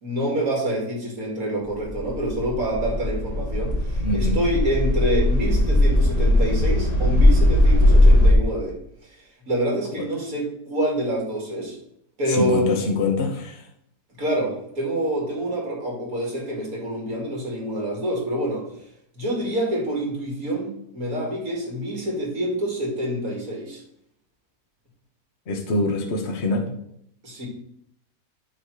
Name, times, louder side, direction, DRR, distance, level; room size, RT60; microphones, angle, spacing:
voice 1, 0.0-8.8 9.5-11.8 12.2-12.6 14.2-18.7 19.1-23.8 27.2-27.5, right 1 dB, 65° right, -1 dB, 2.8 m, -27 dB
sound 1, 1.7-8.3, left 1 dB, 30° left, 1.2 m, -18 dB
voice 2, 4.0-4.4 10.0-10.1 12.3-13.7 25.5-26.7, left 3 dB, 50° left, 3 dB, 1.3 m, -24 dB
8.8 x 3.2 x 6.4 m, 0.73 s
omnidirectional pair, 1.6 m